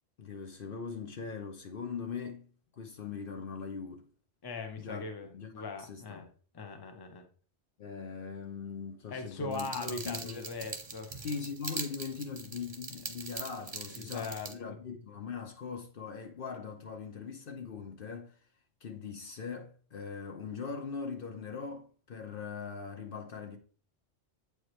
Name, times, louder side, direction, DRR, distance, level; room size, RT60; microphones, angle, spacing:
voice 1, 0.2-2.5 2.7-4.1 4.8-5.1 5.3-6.2 7.8-10.5 11.2-18.3 18.8-23.6, left 5 dB, 60° left, 0.9 m, -41 dB
voice 2, 4.4-6.3 6.5-7.3 9.1-11.3 13.9-14.8, left 3 dB, 25° left, 0.7 m, -40 dB
sound 1, 9.5-14.5, right 4 dB, 35° right, 0.9 m, -42 dB
8.0 x 4.7 x 3.1 m
omnidirectional pair, 1.1 m